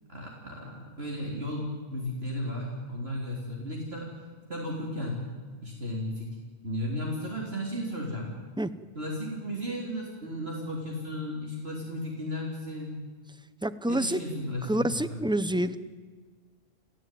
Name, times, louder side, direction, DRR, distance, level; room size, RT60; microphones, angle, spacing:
voice 1, 0.1-4.1 4.5-5.2 5.6-6.4 6.6-8.3 9.0-12.9 13.9-15.2, left 1 dB, 55° right, -2 dB, 3.9 m, -34 dB
voice 2, 13.6-14.2 14.7-15.8, right 1 dB, 5° right, 13 dB, 0.6 m, -27 dB
29.5 x 15.5 x 9.2 m, 1.4 s
omnidirectional pair, 1.3 m